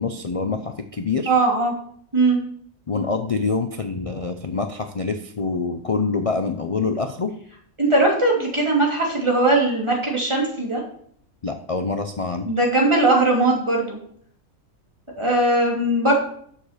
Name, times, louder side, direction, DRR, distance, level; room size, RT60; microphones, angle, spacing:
voice 1, 0.0-1.3 2.9-7.3 11.4-12.5, left 4 dB, 55° left, 6 dB, 0.4 m, -25 dB
voice 2, 1.3-1.7 2.1-2.4 7.8-10.8 12.4-14.0 15.2-16.1, right 2 dB, 20° right, -2 dB, 2.7 m, -19 dB
7.2 x 6.6 x 6.6 m, 0.63 s
omnidirectional pair, 1.4 m